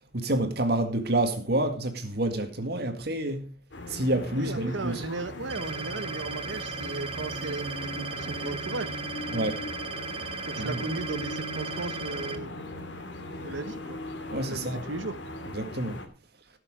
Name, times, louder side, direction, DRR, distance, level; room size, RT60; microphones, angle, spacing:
voice 1, 0.1-3.5 3.9-5.0 9.3-9.6 10.6-10.8 14.3-14.8 15.5-16.0, right 1 dB, 55° right, 2.0 m, -28 dB
sound 1, 3.7-16.1, left 1 dB, 70° left, 2.2 m, -39 dB
voice 2, 4.3-9.0 10.4-12.6 13.4-14.0 14.5-15.2, right 3 dB, 85° right, 1.0 m, -36 dB
sound 2, 5.5-12.4, right 4 dB, 30° right, 0.9 m, -37 dB
17.0 x 6.9 x 5.0 m
head